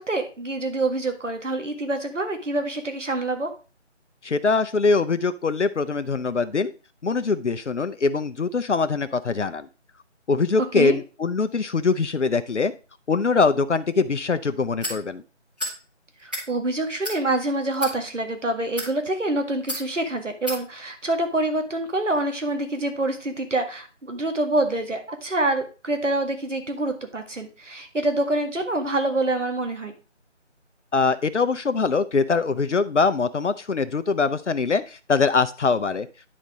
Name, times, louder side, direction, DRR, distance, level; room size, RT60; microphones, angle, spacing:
voice 1, 0.0-3.5 10.8-11.0 16.2-29.9, right 2 dB, 80° right, 6 dB, 2.1 m, -26 dB
voice 2, 4.2-6.7 7.0-9.7 10.3-12.7 13.1-15.2 30.9-36.1, left 4 dB, 70° left, 11 dB, 0.7 m, -23 dB
sound 1, 14.8-15.0 15.6-15.8 16.2-16.5 17.0-17.2 17.7-17.9 18.6-18.9 19.7-19.8 20.5-20.6, equal, 10° right, 1.5 m, -30 dB
10.0 x 4.3 x 4.9 m, 0.34 s
figure-of-eight pair, 170°, 37 cm